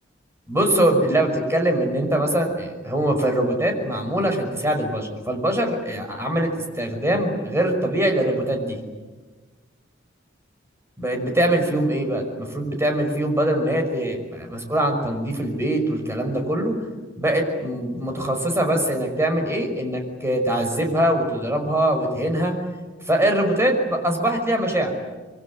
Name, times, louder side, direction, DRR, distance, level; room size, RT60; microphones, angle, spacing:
voice 1, 0.5-8.8 11.0-16.7 17.2-22.5 23.1-24.9, right 1 dB, 15° right, 4 dB, 5.7 m, -23 dB
26.0 x 23.5 x 9.8 m, 1.3 s
head